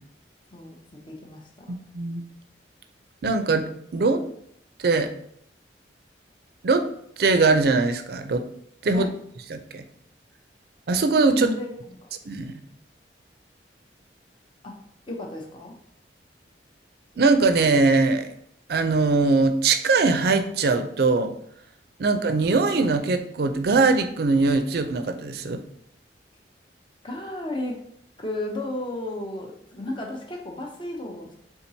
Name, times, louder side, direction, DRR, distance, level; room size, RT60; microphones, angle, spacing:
voice 1, 0.5-1.7 8.9-9.1 11.3-11.7 12.0-12.1 14.6-14.7 15.1-15.8 27.0-27.8 28.2-31.3, left 1 dB, 25° left, 0 dB, 0.6 m, -33 dB
voice 2, 3.2-4.2 4.8-5.1 6.6-6.9 7.2-8.5 8.8-9.1 9.5-9.8 10.9-11.5 12.3-12.5 17.2-18.3 18.7-21.3 22.0-25.6, right 3 dB, 60° right, 9 dB, 0.4 m, -21 dB
4.4 x 3.7 x 2.7 m, 0.67 s
head